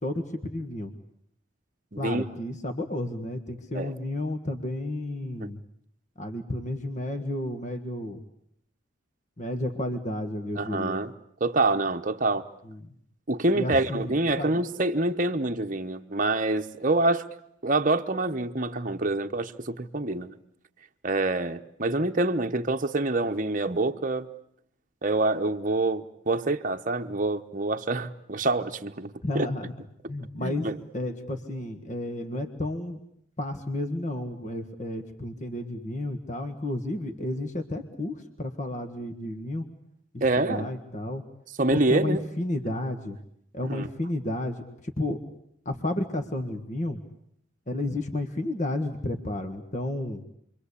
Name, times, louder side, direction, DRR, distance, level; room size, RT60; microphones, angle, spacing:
voice 1, 0.0-0.9 2.0-5.6 6.2-8.2 9.4-11.0 12.6-12.8 13.5-14.5 29.2-29.7 30.1-30.7 30.9-33.0 33.4-39.7 40.1-41.2 41.7-43.2 43.5-44.6 44.8-45.2 45.6-47.0 47.7-50.2, left 1 dB, 35° left, 1.7 m, -32 dB
voice 2, 1.9-2.2 3.7-3.9 5.4-5.5 10.6-11.1 11.4-12.5 13.3-17.3 17.6-20.3 21.0-24.3 25.0-29.5 30.4-30.8 40.2-40.7 41.6-42.2 43.7-43.9, right 2 dB, 40° right, 1.0 m, -26 dB
28.5 x 23.5 x 8.4 m
head